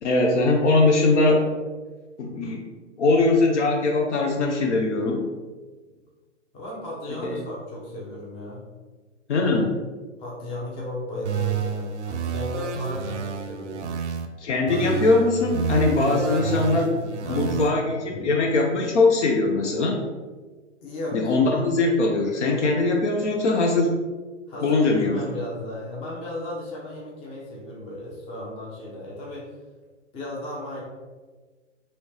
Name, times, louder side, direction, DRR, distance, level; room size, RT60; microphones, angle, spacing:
voice 1, 0.0-1.5 2.2-2.6 3.0-5.3 7.2-7.4 9.3-9.7 14.4-16.9 17.3-20.0 21.1-24.0 24.6-25.2, left 3 dB, 70° left, 1 dB, 0.6 m, -21 dB
voice 2, 6.5-8.6 10.2-13.8 16.3-18.4 20.8-21.2 24.5-29.5 30.1-30.8, left 1 dB, 15° left, -4 dB, 0.5 m, -35 dB
sound 1, 11.2-14.3 14.7-17.7, right 7 dB, 65° right, 0.5 m, -29 dB
3.1 x 2.8 x 3.1 m, 1.3 s
figure-of-eight pair, 110°, 37 cm